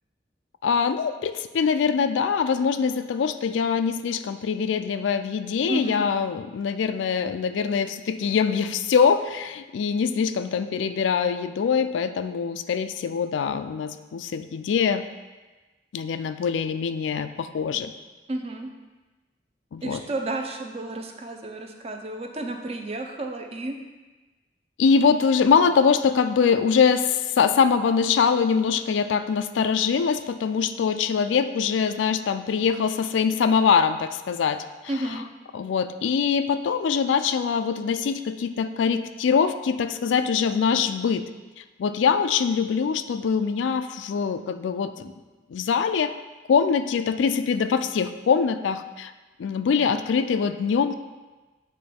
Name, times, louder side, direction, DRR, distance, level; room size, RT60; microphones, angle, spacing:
voice 1, 0.6-15.0 15.9-17.9 19.7-20.0 24.8-34.6 35.5-41.2 41.8-45.1 45.5-46.1 46.5-49.1 49.4-50.9, left 6 dB, 85° left, 11 dB, 0.3 m, -23 dB
voice 2, 5.7-6.0 18.3-18.7 19.8-23.8 34.9-35.3, right 1 dB, 35° right, 4 dB, 0.5 m, -31 dB
8.5 x 3.1 x 4.3 m, 1.2 s
head